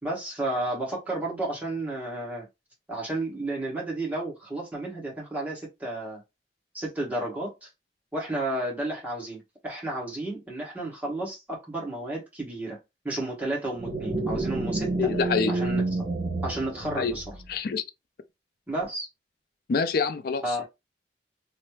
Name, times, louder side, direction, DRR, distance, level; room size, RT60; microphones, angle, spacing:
voice 1, 0.0-2.5 2.9-6.2 6.7-7.7 8.1-12.8 13.0-15.1 15.5-15.9 16.4-17.2 18.7-19.1 20.4-20.7, right 1 dB, 10° right, 1.3 m, -32 dB
sound 1, 13.8-17.5, right 2 dB, 50° right, 2.0 m, -29 dB
voice 2, 15.0-15.5 17.0-17.1 17.5-17.8 19.7-20.6, left 5 dB, 55° left, 0.4 m, -26 dB
3.2 x 2.0 x 3.1 m
head